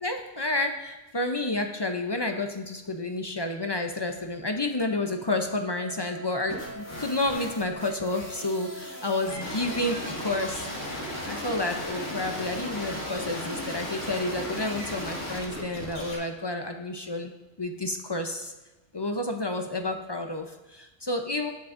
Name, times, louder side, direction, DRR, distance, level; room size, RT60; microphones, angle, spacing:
voice 1, 0.0-10.7 10.9-17.3 17.6-18.5 18.9-21.5, left 2 dB, 35° left, 4 dB, 0.4 m, -30 dB
Wind instrument woodwind instrument, 5.7-14.6, right 1 dB, 20° right, 1.0 m, -44 dB
sound 1, 6.5-16.1, left 1 dB, 75° left, 2.1 m, -36 dB
18.0 x 6.0 x 2.5 m, 1.1 s
omnidirectional pair, 1.3 m